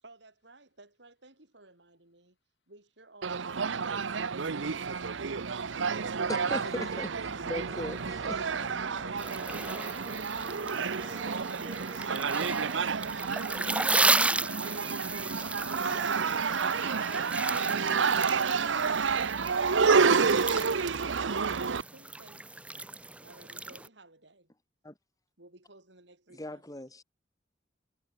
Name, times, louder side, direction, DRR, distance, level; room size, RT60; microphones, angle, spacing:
voice 1, 0.0-2.4 2.7-6.2 6.8-6.9 21.2-22.5 23.2-24.5 25.4-26.6, right 2 dB, 65° right, 5.6 m, -56 dB
sound 1, 3.2-21.8, right 5 dB, 85° right, 0.8 m, -29 dB
voice 2, 6.3-7.1 7.5-8.4 24.8-24.9 26.3-27.0, left 1 dB, 20° left, 2.0 m, -38 dB
sound 2, 6.8-12.0, right 1 dB, 25° right, 2.6 m, -49 dB
voice 3, 7.6-8.5 8.9-10.4, left 2 dB, 65° left, 5.8 m, -54 dB
sound 3, 9.2-23.9, right 2 dB, 5° right, 0.5 m, -34 dB
head